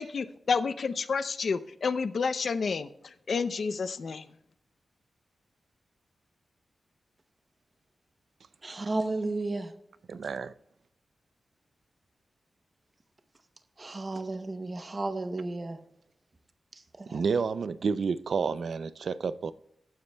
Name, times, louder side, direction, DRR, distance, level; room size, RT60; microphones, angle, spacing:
voice 1, 0.0-4.3, left 5 dB, 50° left, 0.5 m, -30 dB
voice 2, 8.6-9.7 13.8-15.8 17.0-17.2, right 2 dB, 25° right, 0.7 m, -33 dB
voice 3, 10.1-10.5 17.1-19.5, right 5 dB, 60° right, 0.4 m, -30 dB
18.5 x 9.5 x 2.2 m
wide cardioid pair, 175°, 0 cm